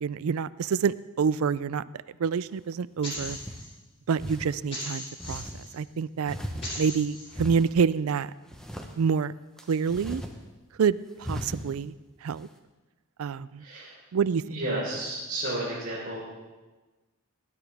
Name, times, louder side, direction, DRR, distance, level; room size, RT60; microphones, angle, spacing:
voice 1, 0.0-1.8 2.2-3.4 4.1-5.4 5.7-6.4 6.8-8.3 9.0-9.3 9.7-10.2 10.8-11.9 12.2-12.5 13.2-13.6 14.1-14.4, right 6 dB, 75° right, 18 dB, 0.4 m, -27 dB
sound 1, 2.5-2.6 3.1-3.6 4.1-4.5 5.2-5.6 6.2-7.0 7.3-7.7 8.5-8.9 9.6-10.3 10.6-10.7 11.2-11.7, equal, 5° left, 1.0 m, -37 dB
sound 2, 3.0-3.7 4.7-5.7 6.6-7.3, left 1 dB, 25° left, 3.8 m, -37 dB
voice 2, 13.6-13.9 14.4-16.2, right 1 dB, 40° right, -10 dB, 4.3 m, -32 dB
19.5 x 11.0 x 3.5 m, 1.2 s
head